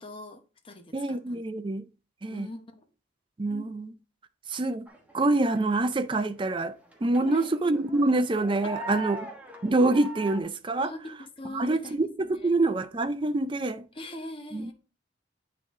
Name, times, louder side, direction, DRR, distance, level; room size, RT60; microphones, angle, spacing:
voice 1, 0.0-1.4 2.3-2.9 3.4-3.7 7.2-7.5 10.8-12.0 12.3-12.5 13.9-14.7, left 1 dB, 25° left, 0.9 m, -41 dB
voice 2, 0.9-1.8 2.2-2.5 3.4-3.9 4.5-4.9 5.1-6.7 7.0-9.2 9.6-10.9 11.5-13.9 14.5-14.7, right 2 dB, 25° right, 0.5 m, -26 dB
sound 1, 4.9-5.7 6.2-10.4, right 3 dB, 5° right, 1.2 m, -40 dB
8.8 x 3.9 x 3.6 m
head